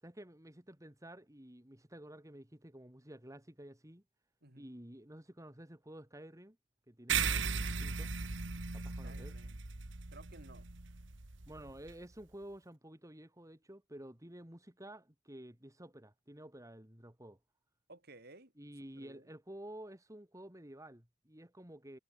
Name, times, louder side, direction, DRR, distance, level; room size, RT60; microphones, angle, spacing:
voice 1, 0.0-4.0 4.6-6.6 6.9-8.1 8.7-9.4 11.5-17.4 18.6-22.0, right 1 dB, 15° right, 3.2 m, -51 dB
sound 1, 7.1-11.9, right 5 dB, 75° right, 1.7 m, -37 dB
voice 2, 9.0-9.6 10.1-10.7 17.9-18.5 18.9-19.3, right 2 dB, 55° right, 6.8 m, -56 dB
head